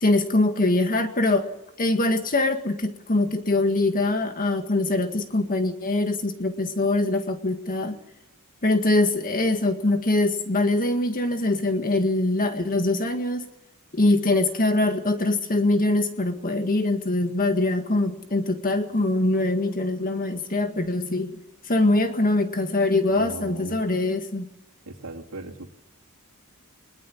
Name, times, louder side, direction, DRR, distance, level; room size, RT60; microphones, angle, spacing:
voice 1, 0.0-1.5 1.8-8.0 8.6-13.5 13.9-21.4 21.7-24.5, left 2 dB, 40° left, 6 dB, 1.9 m, -23 dB
voice 2, 23.2-23.8 24.9-25.7, right 2 dB, 90° right, -4 dB, 2.8 m, -38 dB
23.0 x 21.5 x 7.2 m, 0.88 s
head